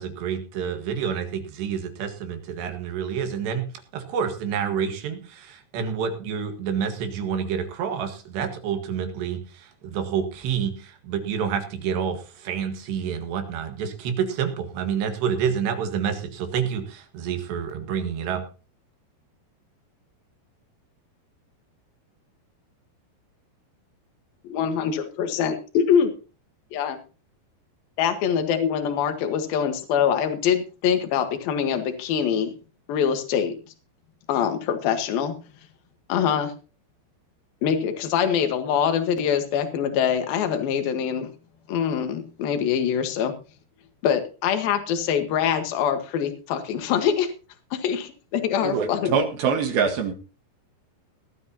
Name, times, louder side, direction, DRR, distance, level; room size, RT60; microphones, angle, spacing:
voice 1, 0.0-18.5, right 7 dB, 85° right, 6 dB, 3.9 m, -28 dB
voice 2, 24.4-26.1 26.7-27.0 28.0-32.5 32.9-33.5 34.3-35.3 36.1-36.5 37.6-41.3 41.7-43.3 44.0-47.3 47.7-49.1, left 8 dB, 65° left, 7 dB, 3.2 m, -24 dB
voice 3, 48.6-50.1, right 6 dB, 65° right, 4 dB, 3.2 m, -24 dB
18.5 x 12.5 x 2.9 m, 0.35 s
omnidirectional pair, 4.8 m